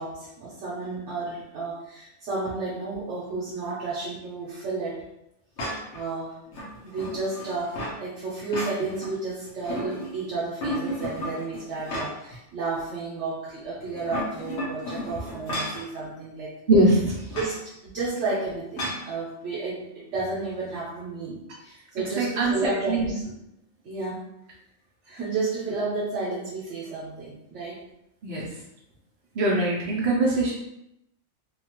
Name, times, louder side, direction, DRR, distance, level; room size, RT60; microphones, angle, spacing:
voice 1, 0.0-5.0 5.9-6.3 6.8-16.6 17.3-23.3 23.8-24.3 25.1-27.8, right 3 dB, 85° right, -6 dB, 1.0 m, -32 dB
sound 1, 5.6-6.0 6.5-8.0 8.4-9.1 9.4-10.2 10.6-12.4 12.8-12.9 13.9-15.9 17.3-17.6 18.8-19.1, equal, 85° left, 1.1 m, -33 dB
voice 2, 16.7-17.1 22.2-23.1 28.2-28.4 29.4-30.5, right 2 dB, 60° right, -6 dB, 0.7 m, -22 dB
2.7 x 2.2 x 2.9 m, 0.82 s
omnidirectional pair, 1.2 m